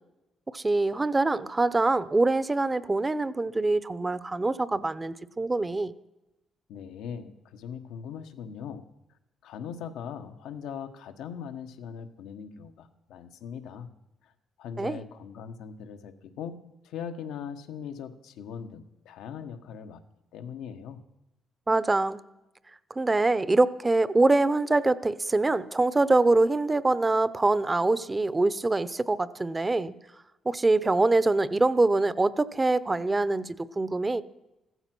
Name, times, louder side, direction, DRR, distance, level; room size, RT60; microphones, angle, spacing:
voice 1, 0.5-5.9 14.8-15.0 21.7-22.2 23.0-29.9 30.5-34.2, right 2 dB, 20° right, 16 dB, 0.7 m, -24 dB
voice 2, 6.7-8.9 9.4-13.9 14.2-14.3 14.6-20.0 20.3-21.0, left 7 dB, 90° left, 7 dB, 1.2 m, -40 dB
15.5 x 14.0 x 6.1 m, 0.95 s
cardioid pair, 90°, 0 cm